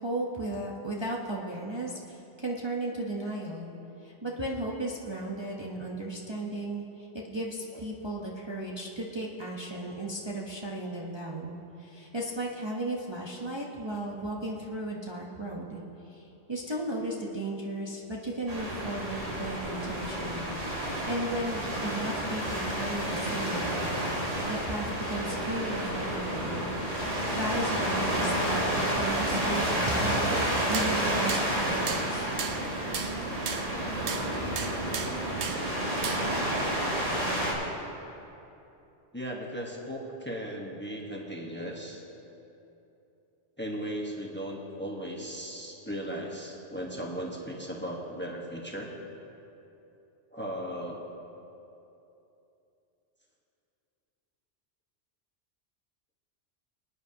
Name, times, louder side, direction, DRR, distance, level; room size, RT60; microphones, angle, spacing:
voice 1, 0.0-3.7 4.0-23.9 24.4-26.7 27.0-30.4 30.7-32.3, right 1 dB, 25° right, -4 dB, 1.0 m, -35 dB
sound 1, 18.5-37.5, right 1 dB, 80° right, 3.2 m, -30 dB
sound 2, 30.3-36.4, right 6 dB, 65° right, 1.0 m, -37 dB
voice 2, 39.1-42.0 43.6-48.9 50.3-51.0, equal, 10° left, -1 dB, 1.2 m, -37 dB
24.0 x 9.9 x 2.9 m, 2.9 s
omnidirectional pair, 1.2 m